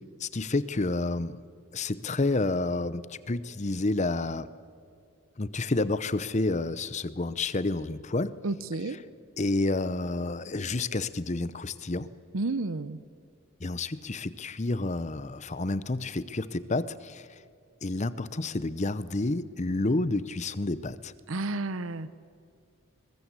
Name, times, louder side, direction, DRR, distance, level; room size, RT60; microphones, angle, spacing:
voice 1, 0.2-1.4 1.7-4.5 5.4-8.4 9.4-12.1 13.6-17.3 17.8-21.1, left 2 dB, 35° left, 16 dB, 0.7 m, -29 dB
voice 2, 8.4-9.0 12.3-13.0 21.3-22.1, right 2 dB, 75° right, 14 dB, 0.8 m, -31 dB
22.0 x 20.5 x 8.3 m, 2.3 s
head